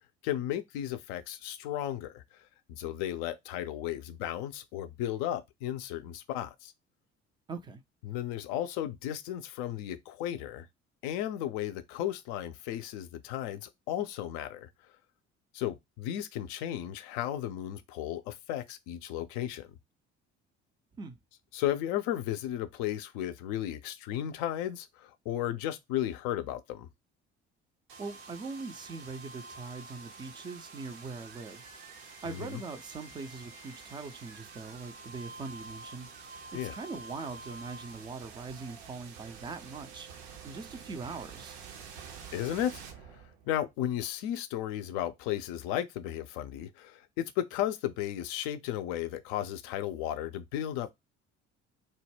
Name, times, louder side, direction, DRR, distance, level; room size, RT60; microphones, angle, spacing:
voice 1, 0.2-2.2 2.7-6.7 8.1-10.7 11.0-14.7 15.5-19.7 21.5-26.9 32.2-32.6 36.5-36.7 42.3-42.8 43.5-50.9, left 12 dB, 55° left, 0.4 m, -34 dB
voice 2, 7.5-7.8 20.9-21.2 28.0-31.6 32.2-36.1 36.5-40.1 40.4-41.6, right 4 dB, 15° right, 0.3 m, -41 dB
sound 1, 27.9-43.7, right 4 dB, 65° right, 0.6 m, -48 dB
2.2 x 2.0 x 3.1 m
figure-of-eight pair, 55°, 35 cm